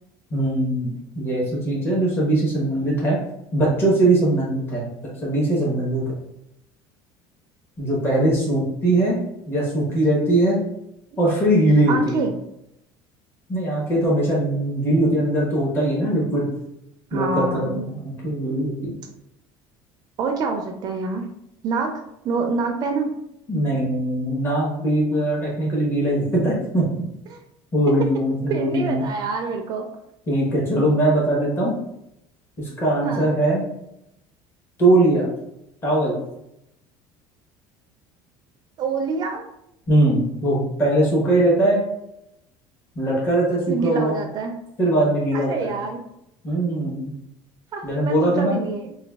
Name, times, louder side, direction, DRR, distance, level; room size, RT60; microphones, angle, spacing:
voice 1, 0.3-3.2 3.5-4.9 5.2-6.0 7.8-9.2 9.5-10.6 11.2-12.2 13.5-16.5 17.1-19.0 23.5-26.8 27.7-29.0 30.3-31.7 32.6-33.6 34.8-35.3 35.8-36.2 39.9-41.8 42.9-44.2 44.8-45.7 46.4-47.1 47.8-48.6, right 1 dB, 25° left, -5 dB, 1.0 m, -21 dB
voice 2, 11.9-12.3 17.1-17.9 20.2-21.3 21.6-23.1 27.3-27.4 28.5-29.9 33.0-33.4 38.8-39.4 43.7-44.6 45.3-46.0 47.7-48.9, right 4 dB, 40° right, 4 dB, 0.4 m, -26 dB
4.7 x 2.2 x 2.3 m, 0.82 s
cardioid pair, 145°, 10 cm